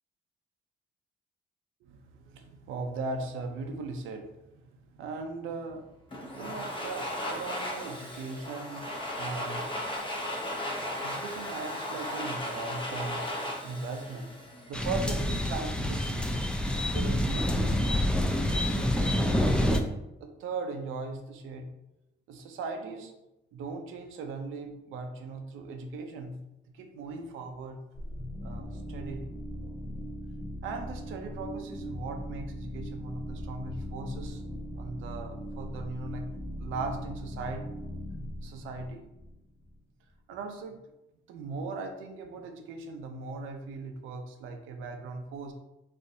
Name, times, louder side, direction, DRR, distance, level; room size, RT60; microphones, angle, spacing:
voice 1, 1.8-5.9 6.3-9.7 10.3-14.4 14.7-16.4 16.8-17.9 18.7-18.9 19.2-19.9 20.2-21.7 22.3-23.1 23.5-26.4 26.7-27.8 28.4-29.3 30.4-34.4 34.7-36.3 36.6-37.7 38.4-39.0 40.3-40.8 41.3-45.5, right 3 dB, 90° right, 5 dB, 0.6 m, -39 dB
Domestic sounds home sounds, 6.1-15.0, left 1 dB, 25° left, 0.8 m, -36 dB
sound 1, 14.7-19.8, left 1 dB, 5° left, 0.3 m, -27 dB
sound 2, 27.9-39.7, equal, 40° left, 1.1 m, -39 dB
4.2 x 2.5 x 2.6 m, 0.91 s
cardioid pair, 90°, 20 cm